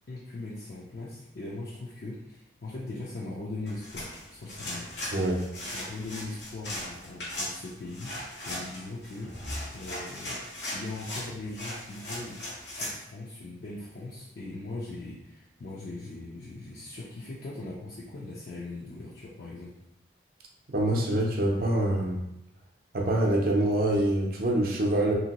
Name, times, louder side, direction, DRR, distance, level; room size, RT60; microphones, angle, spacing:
voice 1, 0.1-4.9 5.7-8.1 8.4-9.3 9.7-10.4 10.7-12.4 12.7-19.8, left 2 dB, 55° left, -5 dB, 0.4 m, -40 dB
sound 1, 3.7-13.0, left 1 dB, 75° left, 1.1 m, -38 dB
voice 2, 20.7-22.2 22.9-25.1, right 1 dB, 50° right, 0 dB, 0.5 m, -25 dB
2.9 x 2.8 x 2.8 m, 0.86 s
head